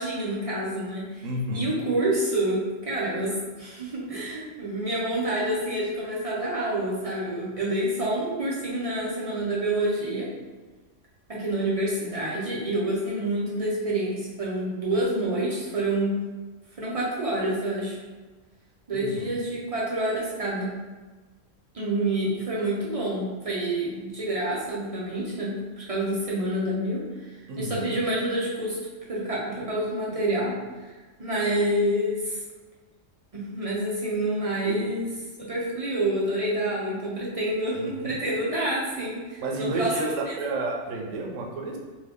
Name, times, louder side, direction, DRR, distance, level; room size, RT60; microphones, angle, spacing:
voice 1, 0.0-1.2 1.5-10.3 11.3-16.2 16.8-18.0 18.9-20.7 21.7-28.8 29.1-30.5 30.8-30.9 31.2-32.4 33.3-35.1 35.4-40.3, right 1 dB, 50° right, -6 dB, 0.4 m, -28 dB
voice 2, 1.2-1.7 18.9-19.4 27.5-27.9 34.6-34.8 37.7-38.1 39.4-41.8, right 2 dB, 75° right, 0 dB, 1.0 m, -31 dB
2.7 x 2.7 x 3.4 m, 1.3 s
omnidirectional pair, 1.3 m